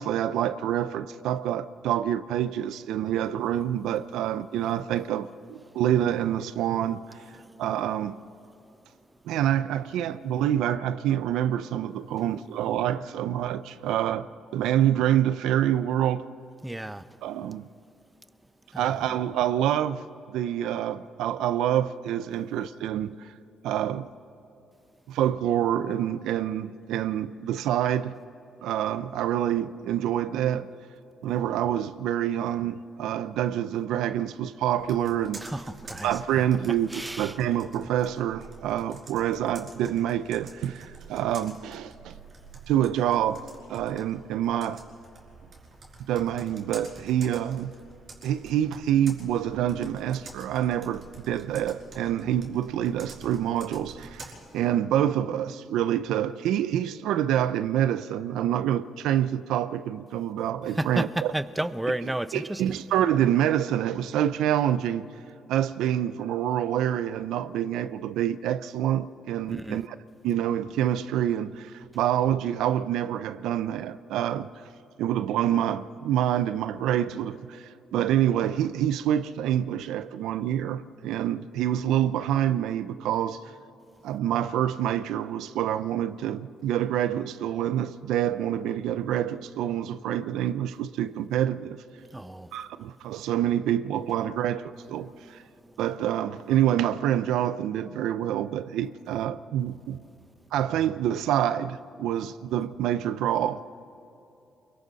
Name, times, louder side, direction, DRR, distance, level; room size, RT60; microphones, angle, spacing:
voice 1, 0.0-7.2 7.6-8.2 9.3-14.3 14.5-16.2 17.2-17.6 18.8-20.0 20.3-23.3 23.6-24.1 25.1-28.1 28.6-30.7 31.2-35.4 36.0-42.1 42.7-43.4 43.7-44.8 46.1-47.7 48.2-61.3 62.3-65.1 65.5-69.9 70.2-74.5 75.0-83.4 84.0-91.8 92.5-95.4 95.8-100.0 100.5-103.6, right 11 dB, 90° right, 0.5 m, -27 dB
voice 2, 16.6-17.2 18.7-19.0 35.4-36.2 36.9-37.4 60.7-62.6 69.5-69.8 92.1-92.5 95.0-95.8, right 1 dB, 10° right, 0.7 m, -33 dB
Computer keyboard, 34.8-54.3, right 3 dB, 45° right, 5.2 m, -48 dB
28.5 x 22.5 x 4.1 m
cardioid pair, 90°, 0 cm